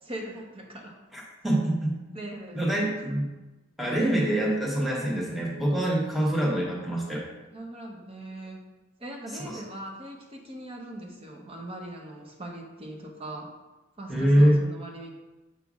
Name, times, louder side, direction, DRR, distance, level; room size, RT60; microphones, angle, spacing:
voice 1, 0.0-0.9 2.1-2.9 7.5-13.5 14.0-15.1, right 1 dB, 25° right, 1 dB, 0.8 m, -40 dB
voice 2, 1.1-2.2 2.5-3.3 3.8-7.2 14.1-14.6, right 1 dB, ahead, -4 dB, 1.0 m, -24 dB
7.1 x 5.6 x 2.4 m, 1.1 s
head